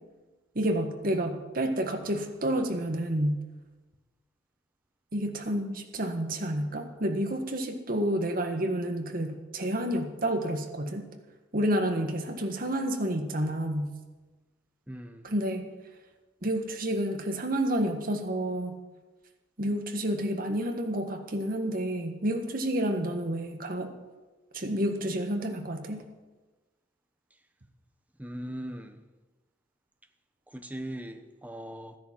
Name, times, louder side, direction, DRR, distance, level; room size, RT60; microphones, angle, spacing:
voice 1, 0.5-3.4 5.1-11.1 11.5-13.9 15.2-15.7 16.4-18.8 19.6-23.9 24.5-26.0, right 1 dB, 50° right, 5 dB, 1.6 m, -29 dB
voice 2, 14.9-15.3 28.2-29.0 30.5-32.0, right 1 dB, 10° right, 7 dB, 0.9 m, -39 dB
13.5 x 10.5 x 7.6 m, 1.2 s
head